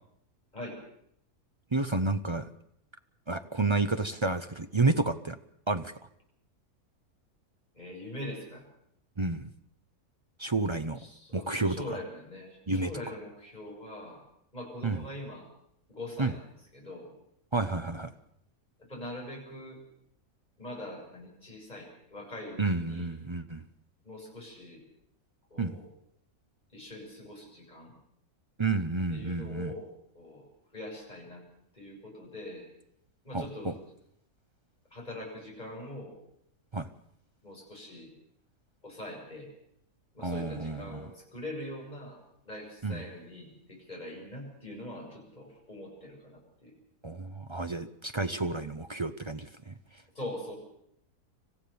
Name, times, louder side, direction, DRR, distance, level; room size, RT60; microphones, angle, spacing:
voice 1, 1.7-2.5 3.3-5.4 5.7-5.9 9.2-9.5 10.4-11.0 11.3-11.8 12.7-12.9 14.8-15.0 16.2-16.3 17.5-18.1 22.6-23.6 25.6-25.8 28.6-29.7 33.3-33.7 36.7-36.9 40.2-41.1 42.8-43.0 47.0-49.7, right 3 dB, 30° right, 9 dB, 0.6 m, -30 dB
voice 2, 7.7-8.6 11.0-14.2 14.5-15.5 15.9-17.1 18.9-19.8 20.6-23.1 24.0-24.8 25.5-25.9 26.7-27.9 29.1-30.5 30.7-31.4 31.7-32.7 33.2-33.8 34.9-36.2 37.4-38.1 38.8-39.5 40.1-46.7 50.2-50.6, left 1 dB, 25° left, -1 dB, 7.2 m, -43 dB
26.5 x 15.5 x 7.0 m, 0.72 s
omnidirectional pair, 1.6 m